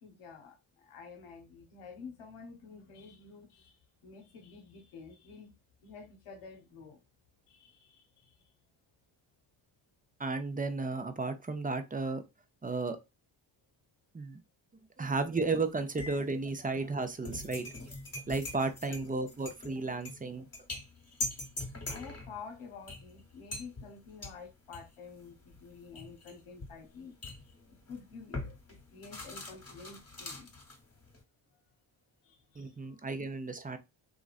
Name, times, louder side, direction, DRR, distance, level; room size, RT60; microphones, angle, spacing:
voice 1, 0.0-5.5 5.8-7.0 7.5-8.4 18.9-19.0 21.9-27.2 27.9-30.5 32.2-32.7, left 5 dB, 90° left, 0.9 m, -50 dB
voice 2, 10.2-12.2 12.6-13.0 14.1-14.4 15.0-17.7 18.3-20.4 32.6-33.8, right 3 dB, 15° right, 0.5 m, -33 dB
sound 1, 15.1-15.6 16.0-31.2, left 2 dB, 30° left, 1.2 m, -43 dB
3.0 x 2.5 x 2.4 m
cardioid pair, 55°, 49 cm